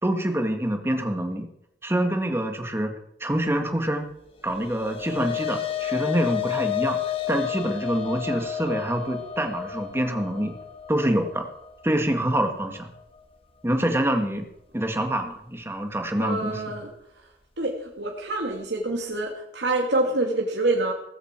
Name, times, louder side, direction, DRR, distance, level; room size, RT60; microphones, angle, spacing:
voice 1, 0.0-1.5 1.8-2.9 3.2-4.1 4.4-7.0 7.3-10.6 10.9-11.4 11.8-12.9 13.6-14.4 14.7-16.8, right 1 dB, 15° right, 5 dB, 1.9 m, -26 dB
sound 1, 4.4-13.0, left 11 dB, 30° left, 2.0 m, -31 dB
voice 2, 16.2-16.9 17.6-20.9, right 2 dB, 85° right, 0 dB, 2.7 m, -26 dB
19.0 x 15.0 x 4.7 m, 0.80 s
head